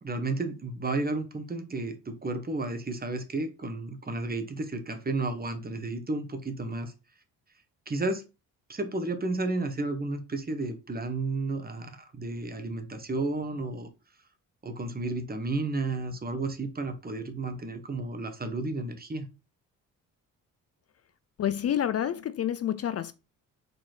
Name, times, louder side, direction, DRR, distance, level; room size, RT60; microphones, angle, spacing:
voice 1, 0.0-6.9 7.9-8.2 8.7-13.9 14.6-19.3, right 2 dB, 25° right, 1.3 m, -32 dB
voice 2, 21.4-23.1, left 10 dB, 45° left, 0.5 m, -28 dB
5.2 x 4.3 x 4.5 m
cardioid pair, 90°, 33 cm